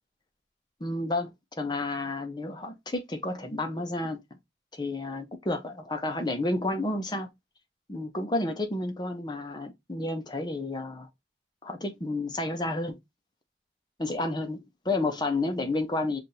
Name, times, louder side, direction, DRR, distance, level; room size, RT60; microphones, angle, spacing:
voice 1, 0.8-4.2 4.7-7.3 7.9-11.1 11.6-13.0 14.0-16.2, left 2 dB, 25° left, 0.8 m, -31 dB
7.2 x 2.5 x 2.7 m
head